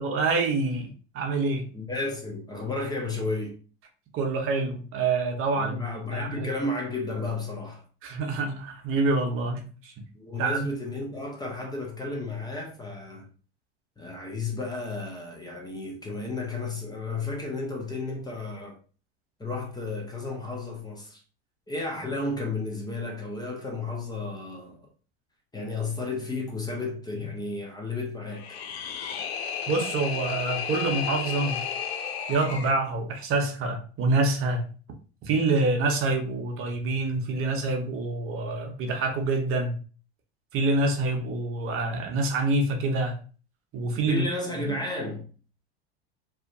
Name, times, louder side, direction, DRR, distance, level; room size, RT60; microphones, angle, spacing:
voice 1, 0.0-1.7 4.1-5.8 6.1-6.5 8.0-9.9 10.4-10.6 29.7-31.6 32.3-34.7 35.2-39.8 40.5-43.2 43.7-44.2 44.5-44.8, right 3 dB, 45° right, 0.7 m, -26 dB
voice 2, 1.7-3.6 5.6-7.8 10.1-13.3 14.0-18.8 19.4-21.2 21.7-24.8 25.5-28.6 43.9-45.3, left 3 dB, 15° left, 0.7 m, -33 dB
sound 1, 28.3-32.8, left 7 dB, 85° left, 0.5 m, -33 dB
2.7 x 2.1 x 2.5 m
hypercardioid pair, 90°, 30 cm